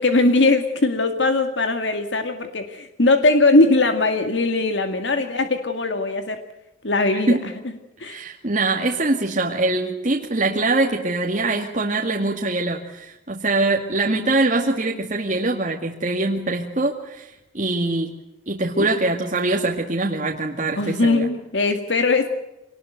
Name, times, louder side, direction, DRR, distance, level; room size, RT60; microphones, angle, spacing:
voice 1, 0.0-6.4 6.8-7.4 8.0-8.2 20.8-22.3, left 2 dB, 70° left, 7 dB, 2.0 m, -20 dB
voice 2, 7.1-7.5 8.0-18.2 18.5-21.3, right 2 dB, 40° right, 0 dB, 2.2 m, -23 dB
25.5 x 19.5 x 8.0 m, 0.92 s
head